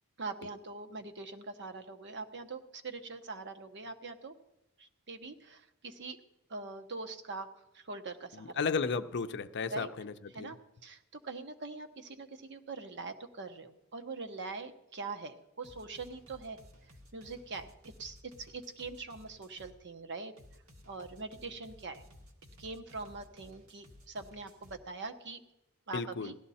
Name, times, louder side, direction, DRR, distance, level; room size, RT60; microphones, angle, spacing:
voice 1, 0.2-4.3 4.8-6.2 6.5-7.5 7.7-8.6 9.7-9.9 10.3-10.6 10.8-16.6 17.1-20.3 20.9-22.0 22.6-25.4 25.9-26.4, right 3 dB, 55° right, 7 dB, 1.0 m, -43 dB
voice 2, 8.6-10.5 25.9-26.3, left 5 dB, 55° left, 10 dB, 0.6 m, -34 dB
sound 1, 15.6-19.8 20.4-24.8, left 1 dB, 75° right, 1.9 m, -56 dB
17.0 x 12.5 x 4.2 m, 0.90 s
head